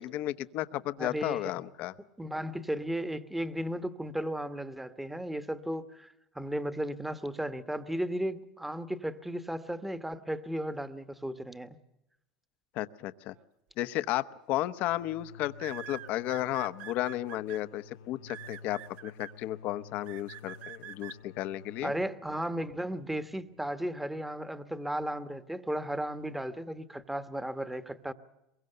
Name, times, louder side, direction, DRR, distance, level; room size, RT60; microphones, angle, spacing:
voice 1, 0.0-1.9 12.7-13.3 13.8-21.9, left 14 dB, 55° left, 0.9 m, -33 dB
voice 2, 1.0-1.6 2.2-11.8 21.8-28.1, right 1 dB, 5° right, 1.2 m, -35 dB
sound 1, 14.1-14.4 15.6-17.6 18.3-19.3 20.1-21.2, right 11 dB, 55° right, 1.0 m, -45 dB
sound 2, 14.8-24.3, left 6 dB, 85° left, 1.3 m, -53 dB
23.0 x 22.0 x 6.7 m
supercardioid pair, 115°, 3 cm